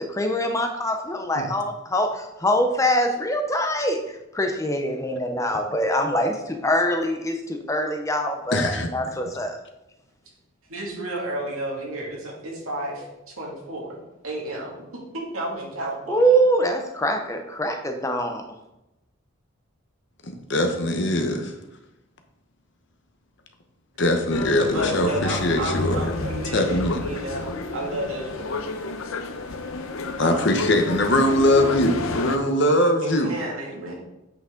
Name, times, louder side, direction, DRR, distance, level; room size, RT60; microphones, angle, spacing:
voice 1, 0.0-9.6 16.1-18.4, equal, 15° left, 5 dB, 0.6 m, -24 dB
voice 2, 8.5-9.1 20.2-21.5 24.0-26.1 26.5-27.0 30.2-33.3, left 1 dB, 55° left, 5 dB, 0.9 m, -22 dB
voice 3, 10.7-14.0 14.2-14.7 15.1-16.3 24.6-28.7 33.0-33.9, right 1 dB, 80° right, -2 dB, 2.3 m, -32 dB
sound 1, 24.3-32.4, left 3 dB, 75° left, 0.7 m, -30 dB
8.2 x 5.8 x 3.8 m, 0.93 s
head